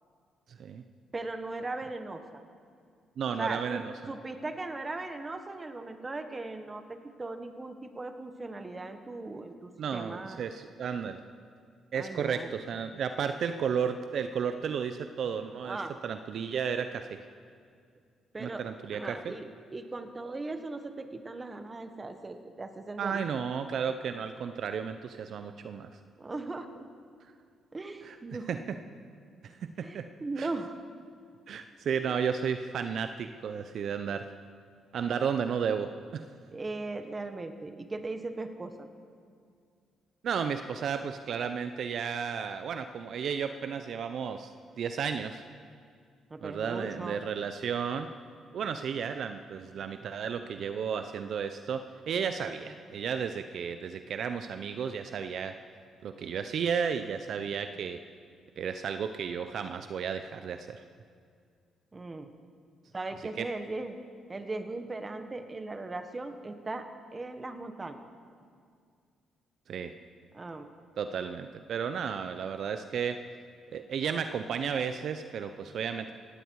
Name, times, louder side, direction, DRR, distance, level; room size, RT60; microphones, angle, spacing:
voice 1, 0.5-0.8 3.2-3.9 9.8-11.2 11.9-15.8 16.0-17.2 18.4-19.3 23.0-25.9 28.0-28.2 28.5-28.6 29.4-30.0 30.4-30.5 31.5-34.3 34.9-36.3 40.2-44.5 44.8-45.4 46.4-48.1 48.5-55.6 56.0-58.0 58.6-60.8 63.4-63.5 69.7-69.9 71.0-73.2 73.7-76.1, right 7 dB, 65° right, 9 dB, 0.6 m, -33 dB
voice 2, 1.1-2.4 3.4-3.8 4.1-10.4 11.9-12.5 15.6-16.0 18.3-18.7 18.9-23.2 26.2-26.9 27.7-28.5 29.8-30.8 32.0-32.2 36.5-38.9 46.3-47.2 52.2-52.3 61.9-62.3 62.9-64.0 64.3-68.0 70.3-70.7, right 2 dB, 25° right, 8 dB, 1.4 m, -38 dB
18.0 x 16.5 x 4.7 m, 2.2 s
cardioid pair, 90°, 0 cm